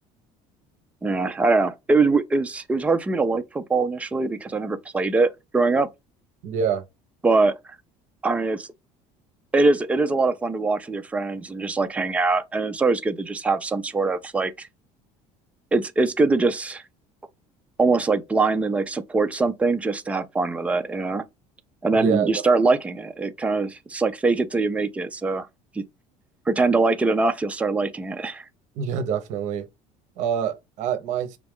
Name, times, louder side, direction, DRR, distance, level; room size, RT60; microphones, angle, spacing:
voice 1, 1.0-5.9 7.2-7.6 8.2-8.7 9.5-14.7 15.7-16.8 17.8-21.2 21.8-25.5 25.8-25.9 26.5-28.4, right 3 dB, 10° right, 0.4 m, -22 dB
voice 2, 6.4-6.8 21.9-22.3 28.7-29.7 30.2-31.4, right 7 dB, 60° right, 0.8 m, -26 dB
5.0 x 2.3 x 3.5 m
cardioid pair, 155°, 14 cm